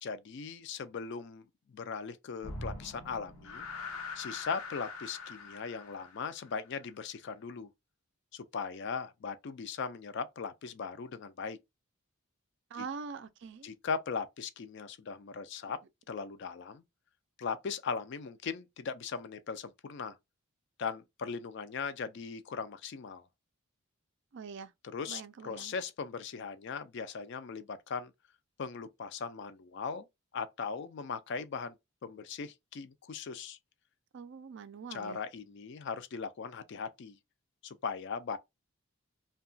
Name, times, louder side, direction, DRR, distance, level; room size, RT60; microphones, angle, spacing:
voice 1, 0.0-3.7 4.1-7.7 8.3-11.6 12.8-12.9 13.6-15.8 16.1-16.8 17.4-20.2 20.8-23.3 24.8-28.1 28.6-30.1 30.3-31.7 32.0-33.6 34.9-37.2 37.6-38.4, left 5 dB, 55° left, 0.3 m, -39 dB
sound 1, 2.4-6.8, left 3 dB, 80° left, 0.8 m, -43 dB
voice 2, 12.7-13.7 24.3-24.7 25.1-25.7 34.1-35.2, right 5 dB, 55° right, 0.3 m, -43 dB
2.8 x 2.2 x 2.5 m
head